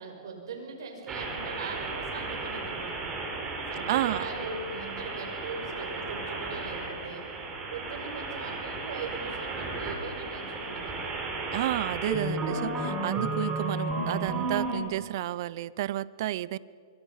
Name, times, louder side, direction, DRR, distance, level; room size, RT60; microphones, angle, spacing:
voice 1, 0.0-3.2 3.7-7.2 7.7-11.1, right 4 dB, 70° right, 3 dB, 6.0 m, -40 dB
sound 1, 1.1-14.8, right 2 dB, 20° right, 4.8 m, -34 dB
voice 2, 3.9-4.3 11.5-16.6, right 14 dB, 55° right, 20 dB, 0.6 m, -31 dB
25.5 x 23.5 x 5.7 m, 2.3 s
hypercardioid pair, 140°, 2 cm